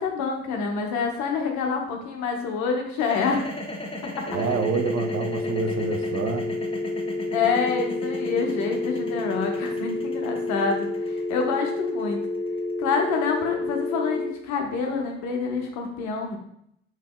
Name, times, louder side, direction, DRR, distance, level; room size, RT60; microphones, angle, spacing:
voice 1, 0.0-3.4 4.2-4.3 7.3-12.2 12.8-16.4, left 5 dB, 65° left, 2 dB, 0.8 m, -27 dB
sound 1, 3.0-13.2, left 2 dB, 15° left, 0.7 m, -37 dB
voice 2, 4.3-6.5, right 6 dB, 45° right, 7 dB, 0.5 m, -27 dB
sound 2, 4.3-14.3, left 2 dB, 65° right, 1.2 m, -29 dB
3.4 x 3.1 x 2.2 m, 0.73 s
hypercardioid pair, 55°, 31 cm